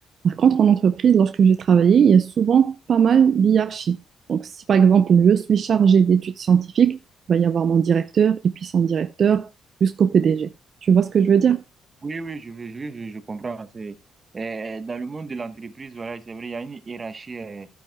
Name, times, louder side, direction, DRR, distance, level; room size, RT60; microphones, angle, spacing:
voice 1, 0.2-4.0 4.3-7.0 7.3-9.5 9.8-10.5 10.8-11.6, right 7 dB, 55° right, 0.5 m, -18 dB
voice 2, 12.0-14.0 14.3-17.7, right 4 dB, 30° right, 1.0 m, -33 dB
12.0 x 9.1 x 2.2 m
cardioid pair, 90°, 0 cm